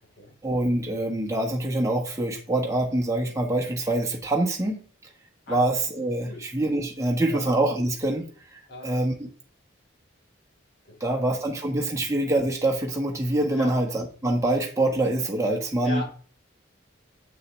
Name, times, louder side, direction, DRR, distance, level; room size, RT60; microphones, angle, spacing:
voice 1, 0.4-4.8 5.5-8.2 8.5-9.3 11.0-16.0, right 1 dB, 15° right, 0 dB, 1.3 m, -25 dB
voice 2, 10.9-11.2 13.5-13.7 15.8-16.1, left 1 dB, 65° left, -2 dB, 4.0 m, -37 dB
7.3 x 6.6 x 3.2 m, 0.41 s
head